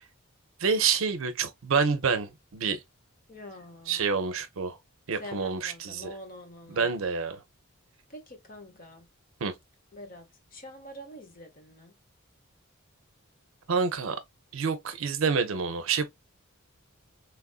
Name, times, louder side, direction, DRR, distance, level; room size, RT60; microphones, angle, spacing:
voice 1, 0.6-2.8 3.9-4.8 5.1-6.1 6.7-7.4 9.4-9.5 13.7-14.2 14.5-16.1, right 5 dB, 65° right, 0.5 m, -28 dB
voice 2, 3.3-4.0 5.1-6.9 8.1-9.1 9.9-11.9, left 1 dB, 40° left, 0.9 m, -45 dB
3.3 x 2.4 x 2.3 m
head